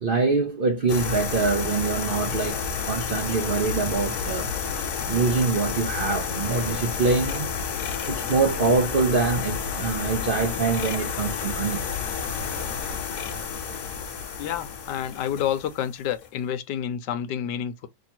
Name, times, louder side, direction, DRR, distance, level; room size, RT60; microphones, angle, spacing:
voice 1, 0.0-4.5 5.1-7.5 8.1-11.9, right 4 dB, 65° right, 0.5 m, -24 dB
sound 1, 0.9-16.3, left 6 dB, 70° left, 1.3 m, -30 dB
voice 2, 14.4-17.9, left 9 dB, 90° left, 1.2 m, -29 dB
3.2 x 2.7 x 4.3 m
omnidirectional pair, 1.8 m